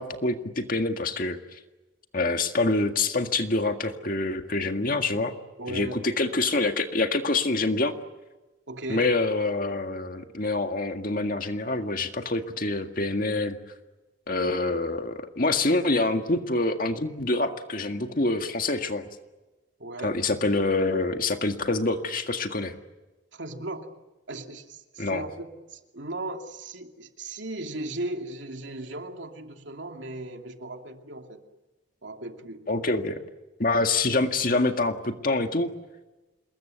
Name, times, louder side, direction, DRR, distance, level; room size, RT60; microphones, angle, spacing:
voice 1, 0.0-1.6 2.1-5.4 5.7-7.9 8.9-13.6 14.3-19.1 20.0-22.8 25.0-25.2 32.7-33.2 33.6-35.7, left 2 dB, 50° left, 6 dB, 1.9 m, -26 dB
voice 2, 5.6-6.1 8.7-9.1 19.8-20.2 23.3-23.9 24.3-31.4 32.0-32.7, right 2 dB, 75° right, 4 dB, 2.7 m, -37 dB
27.5 x 21.5 x 9.3 m, 1.1 s
head